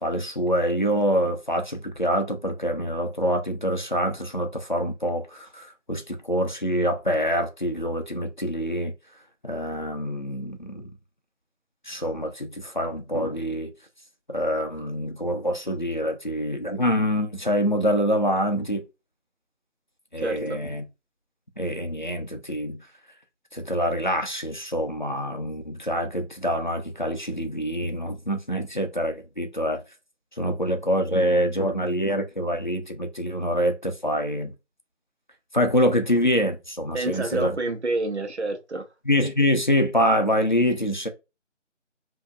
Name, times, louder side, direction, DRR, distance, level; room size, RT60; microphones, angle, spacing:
voice 1, 0.0-8.9 9.4-10.9 11.8-13.7 14.3-18.8 20.1-20.9 21.6-22.8 23.5-29.8 30.4-34.5 35.5-37.6 39.0-41.1, equal, 40° left, 0.6 m, -25 dB
voice 2, 20.2-20.6 36.9-38.9, right 2 dB, 65° right, 1.0 m, -28 dB
5.1 x 2.7 x 2.3 m
figure-of-eight pair, 170°, 36 cm